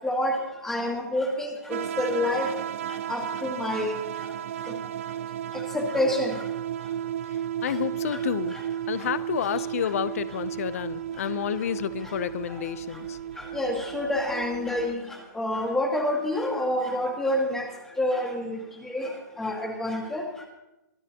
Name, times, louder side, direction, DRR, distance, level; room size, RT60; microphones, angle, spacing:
voice 1, 0.0-0.4 0.6-2.5 3.1-3.9 5.7-6.3 13.5-15.0 15.3-17.7 18.0-18.6 18.9-19.1 19.4-20.2, left 1 dB, 5° left, 1 dB, 1.8 m, -27 dB
sound 1, 1.7-14.9, right 10 dB, 40° right, 0.5 m, -33 dB
voice 2, 7.3-8.6 8.9-13.2, left 10 dB, 45° left, 15 dB, 0.6 m, -30 dB
23.5 x 12.0 x 2.9 m, 0.96 s
hypercardioid pair, 170°, 11 cm